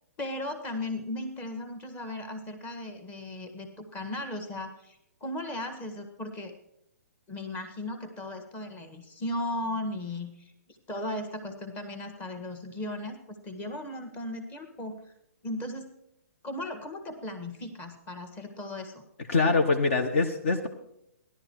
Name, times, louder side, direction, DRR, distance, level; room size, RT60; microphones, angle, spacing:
voice 1, 0.2-6.5 7.3-10.5 10.9-15.0 15.4-15.9 16.4-19.0, left 1 dB, 20° left, 6 dB, 1.6 m, -36 dB
voice 2, 19.3-20.7, left 3 dB, 50° left, 6 dB, 1.1 m, -24 dB
16.0 x 11.5 x 4.6 m, 0.79 s
figure-of-eight pair, 120°, 8 cm